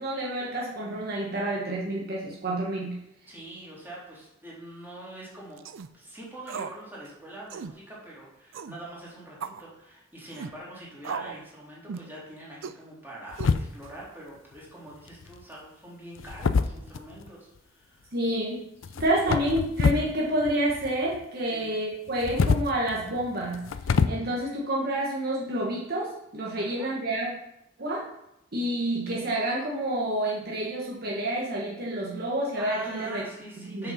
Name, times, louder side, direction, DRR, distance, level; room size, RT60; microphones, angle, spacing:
voice 1, 0.0-3.0 18.1-18.7 19.0-23.6 24.0-27.3 27.8-28.1 28.5-33.2 33.7-33.9, right 1 dB, 50° right, -4 dB, 1.3 m, -29 dB
voice 2, 3.3-5.6 5.9-18.1 18.9-19.4 21.5-21.7 26.6-26.9 32.6-33.9, right 1 dB, 10° right, -6 dB, 2.7 m, -44 dB
sound 1, 5.6-5.9 6.5-6.8 7.1-7.2 7.5-7.8 8.5-8.8 9.4-9.6 10.3-10.6 11.0-11.4 11.9-12.1 12.6-12.8 13.4-13.9, right 6 dB, 80° right, 0.4 m, -37 dB
sound 2, 13.3-14.0 15.1-15.4 16.2-17.3 18.8-20.1 20.4-21.2 22.1-24.1, left 5 dB, 85° left, 0.5 m, -26 dB
6.8 x 5.6 x 5.7 m, 0.83 s
head